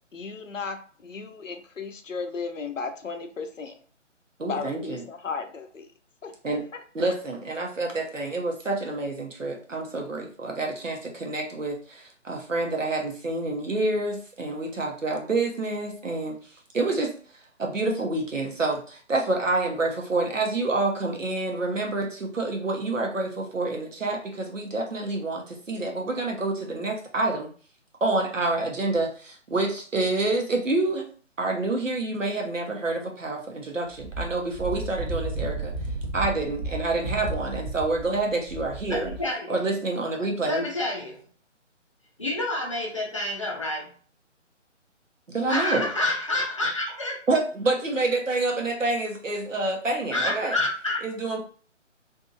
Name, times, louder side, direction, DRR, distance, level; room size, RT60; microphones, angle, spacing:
voice 1, 0.1-3.8 4.4-5.9 6.2-6.3 45.8-45.9, left 5 dB, 85° left, 7 dB, 0.7 m, -35 dB
voice 2, 4.4-5.0 6.4-6.6 6.9-16.4 16.7-17.1 17.6-27.5 28.0-31.1 31.4-35.7 36.1-39.1 39.5-40.6 45.3-45.9 47.3-50.6 51.0-51.4, right 2 dB, 85° right, 2 dB, 1.0 m, -27 dB
Wind, 33.9-39.3, right 2 dB, 35° right, 0.7 m, -33 dB
voice 3, 38.8-39.6 40.4-41.2 42.2-43.9 45.5-47.2 50.1-51.0, left 2 dB, 25° left, -2 dB, 0.5 m, -28 dB
2.7 x 2.7 x 2.5 m, 0.43 s
figure-of-eight pair, 150°, 37 cm